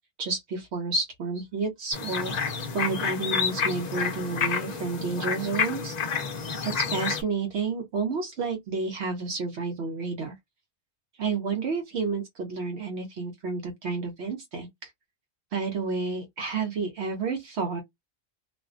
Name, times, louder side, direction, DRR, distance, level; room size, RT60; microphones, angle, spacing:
voice 1, 0.2-5.9 6.6-10.4 11.2-14.9 15.5-17.8, right 4 dB, 70° right, 0.9 m, -30 dB
sound 1, 1.9-7.2, left 6 dB, 50° left, 0.5 m, -29 dB
2.4 x 2.1 x 2.3 m
omnidirectional pair, 1.2 m